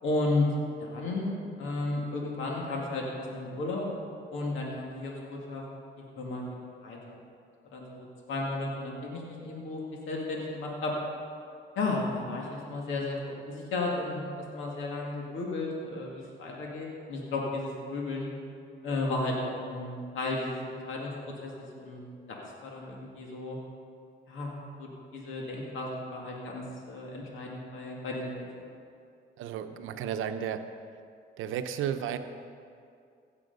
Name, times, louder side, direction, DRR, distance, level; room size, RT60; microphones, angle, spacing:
voice 1, 0.0-0.5 0.8-3.9 4.3-5.6 6.2-6.4 6.8-7.0 7.7-9.8 10.1-10.9 11.8-18.3 18.8-20.6 20.8-21.1 21.4-21.5 21.8-22.0 22.3-23.6 24.3-24.5 24.8-28.4, left 2 dB, 80° left, -2 dB, 2.2 m, -33 dB
voice 2, 29.4-30.6 31.4-32.2, right 9 dB, 90° right, 8 dB, 0.7 m, -33 dB
16.5 x 7.0 x 5.3 m, 2.4 s
cardioid pair, 90°, 20 cm